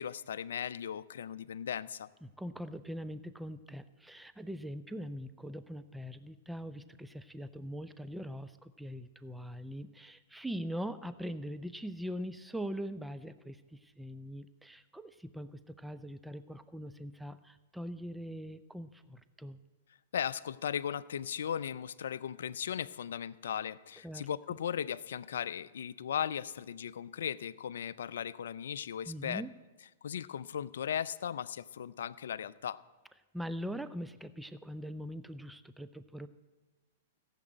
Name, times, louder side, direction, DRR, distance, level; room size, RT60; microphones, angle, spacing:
voice 1, 0.0-2.1 20.1-29.4 30.0-32.8, left 9 dB, 70° left, 18 dB, 0.4 m, -37 dB
voice 2, 2.2-19.6 24.0-24.3 29.1-29.5 33.3-36.3, equal, 5° right, 12 dB, 0.5 m, -42 dB
15.5 x 7.5 x 8.0 m, 1.3 s
hypercardioid pair, 110°, 0 cm